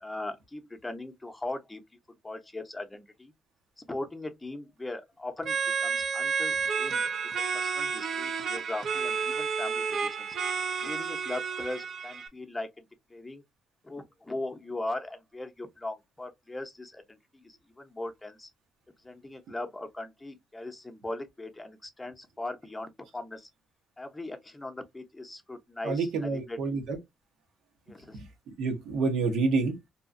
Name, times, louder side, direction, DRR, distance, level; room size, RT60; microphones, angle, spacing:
voice 1, 0.0-1.8 2.2-3.3 3.8-7.1 7.5-10.4 10.8-13.4 13.8-18.5 19.0-23.5 24.0-26.6 27.9-28.2, left 2 dB, 15° left, 0.7 m, -39 dB
sound 1, 5.4-12.3, right 5 dB, 60° right, 0.5 m, -31 dB
voice 2, 25.8-27.0 28.1-28.3 28.6-29.8, right 4 dB, 80° right, 0.9 m, -28 dB
2.8 x 2.4 x 2.5 m
cardioid pair, 90°, 0 cm